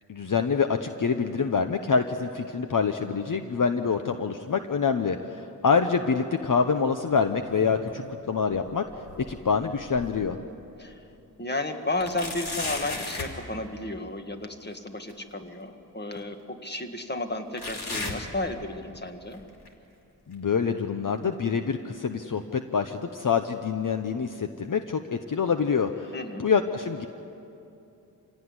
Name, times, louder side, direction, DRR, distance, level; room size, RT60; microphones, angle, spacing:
voice 1, 0.1-8.8 9.2-10.4 20.3-26.1 26.4-27.1, left 5 dB, 55° left, 7 dB, 1.0 m, -26 dB
sound 1, 7.5-8.1 8.5-10.4 10.9-11.0 12.0-13.4 15.1-15.2 16.1-16.2 17.6-19.0 19.3-19.7 20.3-20.4 21.3-21.4, left 3 dB, 80° left, 3.0 m, -36 dB
voice 2, 11.4-19.4 26.1-26.5, left 2 dB, 25° left, 5 dB, 1.9 m, -33 dB
26.0 x 17.0 x 9.8 m, 2.8 s
wide cardioid pair, 90°, 38 cm